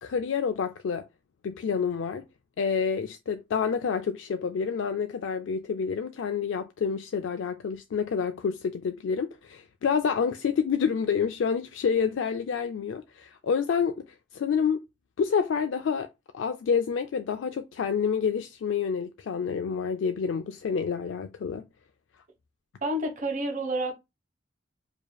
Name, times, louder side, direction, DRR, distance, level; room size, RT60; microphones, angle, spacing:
voice 1, 0.0-1.0 1.4-2.2 2.6-14.0 14.3-14.8 15.2-16.1 16.3-21.7, left 6 dB, 85° left, 0.4 m, -28 dB
voice 2, 22.8-23.9, right 1 dB, 45° right, 1.1 m, -29 dB
4.9 x 2.8 x 2.3 m
head